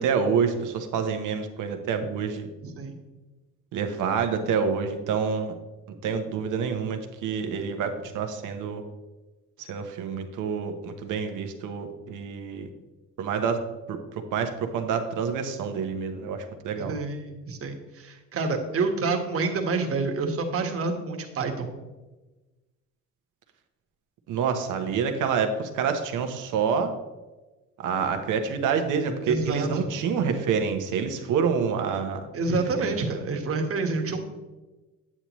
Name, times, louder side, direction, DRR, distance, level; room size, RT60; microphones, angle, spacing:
voice 1, 0.0-2.5 3.7-5.6 6.0-8.8 9.6-12.7 13.2-13.6 13.9-16.9 24.3-26.9 27.8-32.2 32.8-32.9, right 6 dB, 85° right, 6 dB, 1.0 m, -27 dB
voice 2, 2.6-3.0 16.8-21.7 29.2-29.9 32.3-34.2, right 3 dB, 50° right, 3 dB, 1.4 m, -28 dB
8.7 x 8.3 x 3.0 m, 1.2 s
cardioid pair, 90°, 30 cm